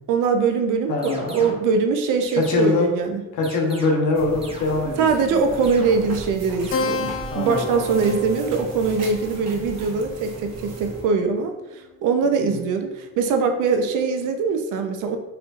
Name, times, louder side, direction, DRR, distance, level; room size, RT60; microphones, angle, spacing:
voice 1, 0.1-3.2 5.0-11.5 12.0-15.2, right 5 dB, 85° right, 6 dB, 0.5 m, -22 dB
voice 2, 0.9-1.5 2.4-2.9 3.3-5.1 7.3-8.1 12.4-12.6, left 3 dB, 85° left, 0 dB, 0.8 m, -23 dB
sound 1, 1.0-1.7 2.2-2.9 3.4-4.2 4.4-5.1 5.6-6.3 6.6-7.3, right 2 dB, 20° right, 0.6 m, -40 dB
sound 2, 4.1-11.0, right 2 dB, 60° right, 1.0 m, -37 dB
Keyboard (musical), 6.7-11.7, left 3 dB, 45° left, 0.5 m, -32 dB
4.4 x 2.5 x 2.5 m, 1.0 s
cardioid pair, 90°, 30 cm